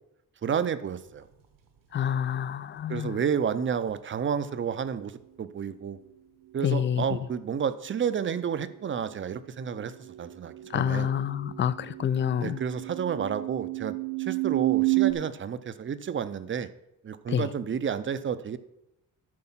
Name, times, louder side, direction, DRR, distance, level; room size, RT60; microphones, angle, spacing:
voice 1, 0.4-1.3 2.9-6.0 6.5-11.1 12.4-16.7 17.0-18.6, right 7 dB, 35° right, 0.6 m, -31 dB
voice 2, 1.9-3.2 6.6-7.0 10.7-12.6 17.3-17.5, left 9 dB, 35° left, 0.4 m, -27 dB
sound 1, 3.9-4.0 7.5-7.6 7.9-8.0 8.3-15.1, right 27 dB, 75° right, 1.2 m, -31 dB
12.5 x 4.8 x 5.6 m
cardioid pair, 125°, 34 cm